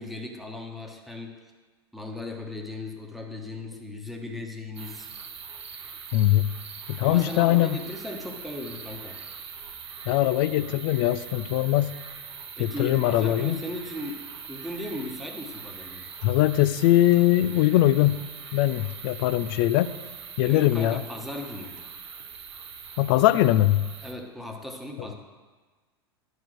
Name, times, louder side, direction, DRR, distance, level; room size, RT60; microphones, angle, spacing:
voice 1, 0.0-1.3 1.9-5.1 7.0-9.2 12.6-16.1 20.4-21.8 24.0-25.1, left 2 dB, ahead, 1 dB, 1.3 m, -37 dB
sound 1, 4.8-24.1, right 6 dB, 85° right, 0.9 m, -42 dB
voice 2, 6.1-6.5 6.9-7.8 10.1-12.0 12.6-13.6 16.2-18.2 18.5-19.9 20.4-21.0 23.0-23.9, left 15 dB, 60° left, 15 dB, 0.5 m, -21 dB
10.0 x 4.7 x 6.2 m, 1.4 s
hypercardioid pair, 95°, 14 cm